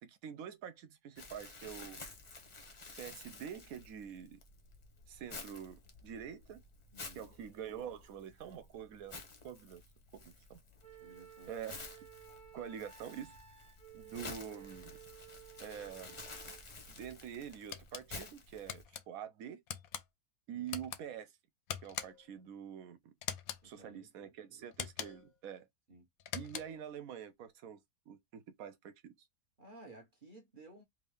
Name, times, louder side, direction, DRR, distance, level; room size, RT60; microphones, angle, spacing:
voice 1, 0.0-2.0 3.0-4.4 5.1-6.6 7.1-9.8 10.1-10.6 11.5-11.8 12.5-13.4 13.9-14.9 15.6-16.2 17.0-19.6 20.5-21.3 21.8-23.1 23.6-25.7 26.3-27.8 28.1-29.3, right 8 dB, 65° right, 1.0 m, -46 dB
Crumpling crinkling, 1.2-18.8, left 3 dB, 30° left, 0.5 m, -52 dB
voice 2, 6.9-7.3 11.0-11.5 12.3-12.4 20.5-20.7 23.6-24.3 25.9-26.1 29.6-30.8, right 2 dB, 35° right, 1.1 m, -56 dB
Wind instrument woodwind instrument, 10.8-16.6, right 10 dB, 5° left, 0.9 m, -56 dB
sound 1, 17.7-18.1 18.7-19.0 19.7-20.0 20.7-21.0 21.7-22.3 23.2-23.6 24.7-25.3 26.2-26.8, left 10 dB, 70° left, 0.9 m, -42 dB
3.5 x 2.8 x 3.3 m
omnidirectional pair, 1.7 m